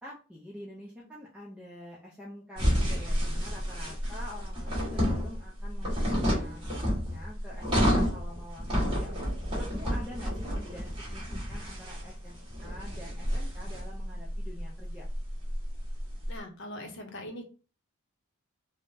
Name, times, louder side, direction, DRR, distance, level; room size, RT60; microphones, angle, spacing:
voice 1, 0.0-6.1 6.4-11.2 11.5-15.1, left 1 dB, 5° right, -5 dB, 0.5 m, -47 dB
sound 1, 2.6-16.3, equal, 25° right, 1.2 m, -30 dB
voice 2, 16.3-17.5, left 1 dB, 55° left, 4 dB, 0.7 m, -41 dB
3.6 x 2.1 x 2.6 m, 0.35 s
head